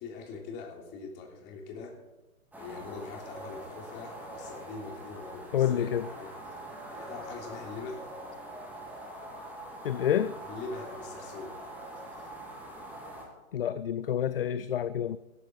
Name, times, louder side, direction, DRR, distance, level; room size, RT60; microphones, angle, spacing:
voice 1, 0.0-2.0 2.6-6.3 6.9-8.0 10.4-11.6, left 4 dB, 25° left, 3.2 m, -42 dB
sound 1, 2.5-13.3, right 1 dB, 5° right, 2.6 m, -44 dB
voice 2, 5.5-6.1 9.8-10.3 13.5-15.2, left 10 dB, 45° left, 0.5 m, -28 dB
18.0 x 13.5 x 4.5 m
figure-of-eight pair, 120°, 42 cm